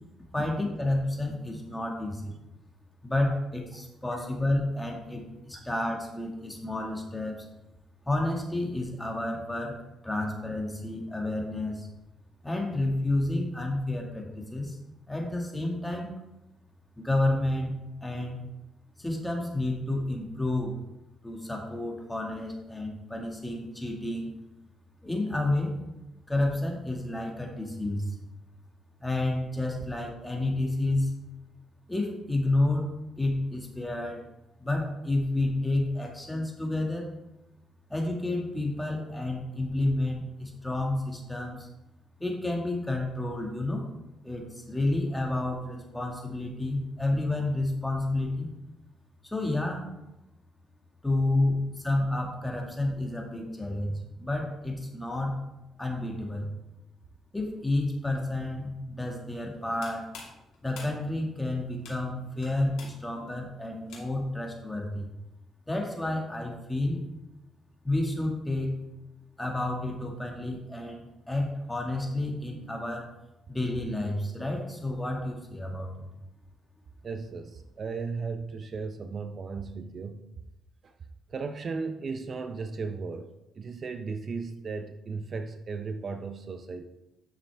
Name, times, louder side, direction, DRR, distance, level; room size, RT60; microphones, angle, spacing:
voice 1, 0.3-2.3 3.0-7.5 8.1-9.8 10.0-11.9 12.4-14.8 15.1-16.1 17.0-17.7 18.0-18.4 19.0-20.8 21.2-24.3 25.0-25.7 26.3-28.1 29.0-31.1 31.9-34.2 34.6-37.1 37.9-41.7 42.2-43.9 44.2-48.5 49.2-49.9 51.0-55.4 55.8-56.5 57.3-60.1 60.6-65.1 65.7-67.0 67.8-68.7 69.4-73.1 73.5-76.1, left 2 dB, 10° left, 0 dB, 2.0 m, -30 dB
sound 1, 59.5-64.4, left 4 dB, 90° left, 2.3 m, -49 dB
voice 2, 77.0-80.3 80.8-80.9 81.3-86.8, right 4 dB, 45° right, 7 dB, 0.6 m, -36 dB
9.2 x 6.6 x 3.5 m, 0.94 s
cardioid pair, 90°, 0 cm